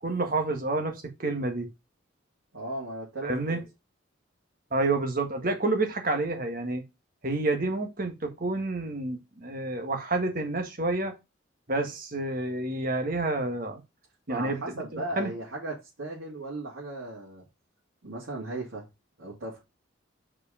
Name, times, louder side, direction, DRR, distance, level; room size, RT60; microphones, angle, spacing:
voice 1, 0.0-1.7 3.2-3.6 4.7-6.8 7.2-11.1 11.7-13.8 14.3-15.3, right 2 dB, 45° right, 1.6 m, -29 dB
voice 2, 2.5-3.6 14.3-17.4 18.0-18.9 19.2-19.6, right 2 dB, 85° right, 2.5 m, -36 dB
4.9 x 4.9 x 4.9 m
head